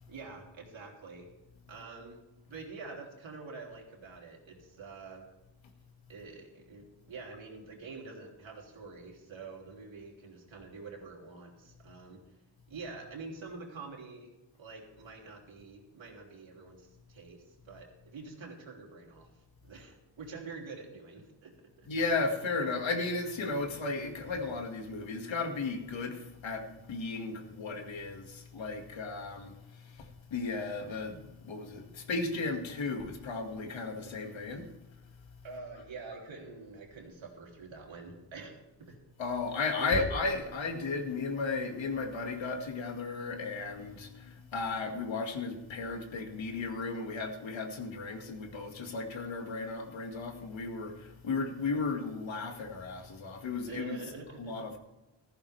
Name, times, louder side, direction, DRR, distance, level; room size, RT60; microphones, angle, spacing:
voice 1, 0.1-1.3 1.7-2.2 2.5-5.2 6.1-12.2 12.7-14.3 14.6-19.3 19.6-21.9 35.4-39.0 39.8-40.1 53.7-54.6, right 4 dB, 85° right, 3.3 m, -46 dB
voice 2, 21.9-34.7 39.2-54.0 54.4-54.8, left 3 dB, 80° left, 2.1 m, -35 dB
16.0 x 14.5 x 3.4 m
wide cardioid pair, 130°, 45 cm